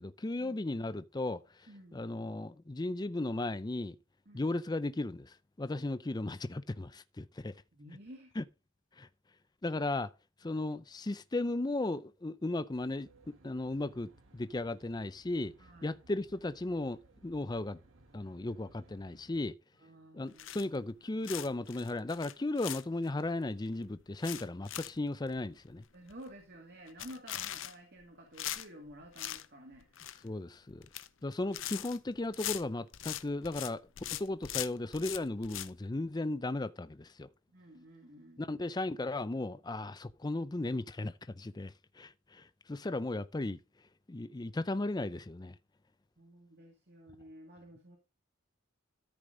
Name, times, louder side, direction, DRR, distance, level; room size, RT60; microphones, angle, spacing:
voice 1, 0.0-4.0 4.3-7.6 8.4-8.5 9.0-9.1 9.6-10.1 10.4-15.5 15.8-17.8 18.1-19.6 20.1-25.8 30.2-30.9 31.2-37.3 38.4-43.6 44.1-45.6, left 2 dB, 20° left, 0.5 m, -36 dB
voice 2, 1.7-2.0 4.3-4.5 7.7-8.3 10.4-10.6 15.6-16.0 19.8-21.9 25.9-30.3 37.5-38.7 46.2-48.0, equal, 50° right, 2.1 m, -53 dB
Aircraft, 12.7-19.4, right 2 dB, 70° right, 1.4 m, -62 dB
sound 1, 20.4-20.9 21.2-23.2 23.7-23.8 24.0-25.0 25.3-25.4 25.8-25.9 26.1-26.4 26.9-28.0 28.4-29.4 29.7-30.3 30.7-31.1 31.3-33.7 34.0-35.7, left 13 dB, 65° left, 0.6 m, -40 dB
13.5 x 5.1 x 3.8 m
head